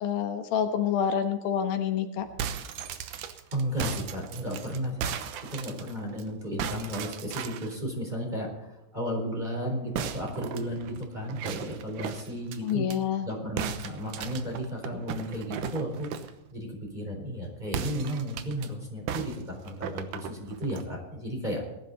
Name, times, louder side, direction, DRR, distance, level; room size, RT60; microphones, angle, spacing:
voice 1, 0.0-2.3 12.6-13.3, left 8 dB, 85° left, 6 dB, 3.1 m, -27 dB
sound 1, 2.2-6.2 6.6-7.8 9.9-13.0 13.6-16.4 17.7-18.7 19.1-20.9, right 8 dB, 70° right, 2.3 m, -36 dB
voice 2, 3.5-5.0 5.5-12.9 13.2-16.1 16.5-21.6, equal, 10° right, -1 dB, 4.2 m, -34 dB
19.5 x 11.5 x 4.1 m, 0.94 s
omnidirectional pair, 4.1 m